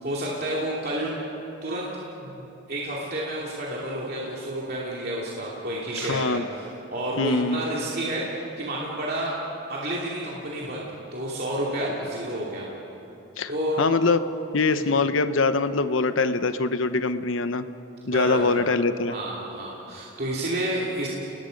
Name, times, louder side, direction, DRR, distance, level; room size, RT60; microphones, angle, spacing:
voice 1, 0.0-1.2 1.6-1.9 2.2-9.4 9.7-12.7 13.5-13.9 14.7-14.9 18.0-18.6 19.1-21.1, right 1 dB, 45° right, -5 dB, 2.7 m, -30 dB
voice 2, 6.0-6.4 7.2-7.6 13.4-13.5 13.8-14.2 14.5-17.6 18.1-19.2, left 3 dB, 70° left, 11 dB, 0.9 m, -23 dB
29.5 x 20.0 x 5.3 m, 2.9 s
head